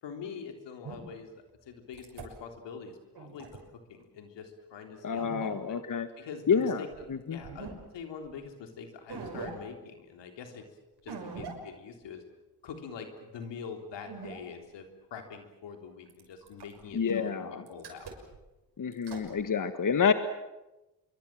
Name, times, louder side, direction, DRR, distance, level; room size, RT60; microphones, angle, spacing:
voice 1, 0.0-3.5 3.9-5.8 6.2-10.7 11.0-12.2 12.6-18.1, left 6 dB, 85° left, 5 dB, 3.6 m, -44 dB
sound 1, 0.8-1.0 1.9-2.3 3.1-3.6 5.2-5.6 6.9-7.0 7.4-7.7 8.3-8.4 9.1-9.5 11.1-11.5 12.0-12.1 14.0-14.4 16.1-16.8 17.7-18.4 18.9-19.3, right 5 dB, 65° right, 6.3 m, -42 dB
voice 2, 5.0-6.1 6.5-6.8 7.1-7.4 16.9-17.6 18.8-20.1, left 6 dB, 50° left, 10 dB, 1.6 m, -28 dB
25.5 x 23.5 x 7.6 m, 1.0 s
supercardioid pair, 55°, 42 cm